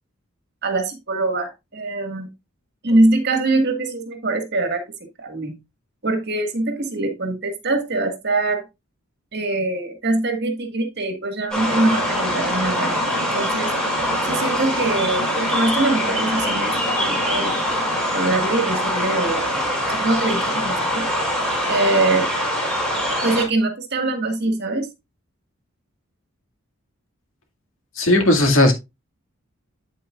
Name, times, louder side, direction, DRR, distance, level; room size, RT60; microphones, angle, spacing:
voice 1, 0.6-2.3 2.8-5.6 6.0-8.6 9.3-13.0 13.3-13.7 14.2-17.6 18.1-19.5 19.9-21.1 21.7-22.3 23.2-24.9, right 2 dB, 55° right, 1.7 m, -23 dB
sound 1, 11.5-23.4, equal, 5° left, 5.4 m, -23 dB
voice 2, 28.0-28.7, left 1 dB, 75° left, 2.1 m, -15 dB
8.7 x 8.3 x 2.4 m
head